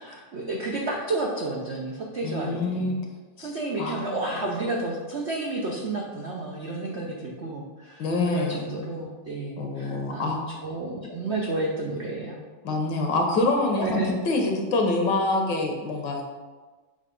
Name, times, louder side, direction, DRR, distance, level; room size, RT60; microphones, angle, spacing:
voice 1, 0.0-2.9 3.4-12.4 13.8-14.1, right 2 dB, 70° right, -2 dB, 0.6 m, -31 dB
voice 2, 2.2-3.0 3.4-3.5 3.8-4.0 8.0-8.6 9.6-10.4 12.6-16.2, left 2 dB, 65° left, 2 dB, 1.5 m, -25 dB
7.0 x 3.3 x 5.2 m, 1.3 s
omnidirectional pair, 2.2 m